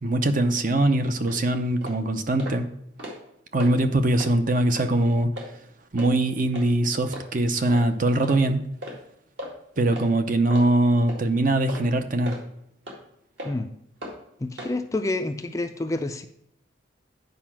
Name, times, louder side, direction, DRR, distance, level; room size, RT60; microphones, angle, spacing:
voice 1, 0.0-2.7 3.5-5.3 5.9-8.6 9.8-12.4, right 1 dB, 40° right, 8 dB, 0.7 m, -22 dB
sound 1, 1.3-1.4 1.8-2.0 2.4-2.6 2.9-3.3 3.6-3.7 4.2-4.3 4.8-4.9 5.4-5.5 6.0-6.1 6.5-6.7 7.1-7.2 7.7-7.9 8.2-8.4 8.8-9.0 9.4-9.5 9.9-10.1 10.5-10.7 11.1-11.2 11.7-11.9 12.3-12.4 12.9-13.0 13.4-13.5 14.0-14.1 14.6-14.7, equal, 60° right, 2.2 m, -36 dB
voice 2, 14.4-16.2, left 2 dB, 15° left, 7 dB, 0.4 m, -28 dB
9.3 x 4.9 x 6.0 m, 0.73 s
head